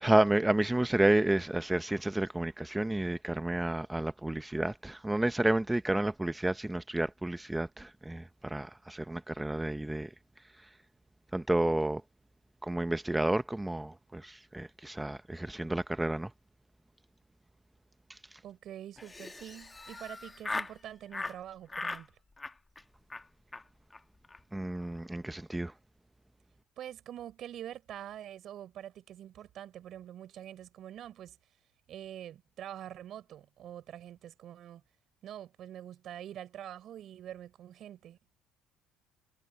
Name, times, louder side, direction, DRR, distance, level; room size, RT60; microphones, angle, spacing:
voice 1, 0.0-10.1 10.6-10.7 11.3-12.0 12.6-16.3 18.1-18.4 24.5-25.7, right 1 dB, 10° right, 0.8 m, -30 dB
voice 2, 18.4-22.2 26.8-31.4 31.9-34.8 35.2-38.2, right 11 dB, 60° right, 4.9 m, -45 dB
Laughter, 19.0-20.8 21.1-21.4 21.7-22.0 22.4-22.8 23.1-23.2 23.5-23.6 23.9-24.0 24.2-24.4 24.7-25.0, left 3 dB, 20° left, 1.3 m, -39 dB
supercardioid pair, 75°, 0 cm